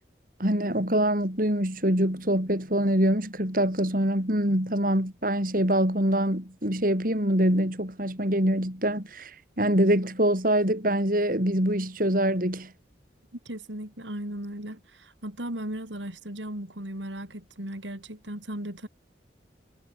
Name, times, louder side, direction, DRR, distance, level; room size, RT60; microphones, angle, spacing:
voice 1, 0.4-12.7, right 1 dB, 50° right, 6.1 m, -24 dB
voice 2, 13.3-18.9, right 1 dB, 85° right, 6.6 m, -37 dB
head